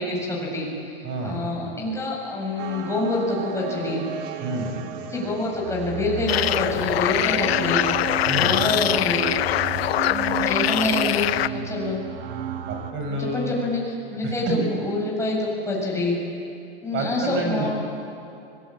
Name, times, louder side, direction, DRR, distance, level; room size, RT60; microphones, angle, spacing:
voice 1, 0.0-4.0 5.1-7.8 8.4-9.3 10.1-12.0 13.1-16.2 16.8-17.7, left 2 dB, 10° left, -3 dB, 7.7 m, -26 dB
voice 2, 1.0-1.5 4.4-4.7 8.3-8.6 12.7-13.5 14.2-14.5 16.9-17.7, right 1 dB, 40° right, 2 dB, 7.1 m, -29 dB
sound 1, 2.6-12.9, right 8 dB, 65° right, 1.7 m, -33 dB
sound 2, 6.3-11.5, left 14 dB, 80° left, 0.8 m, -23 dB
25.0 x 20.0 x 8.8 m, 2.6 s
hypercardioid pair, 115°, 30 cm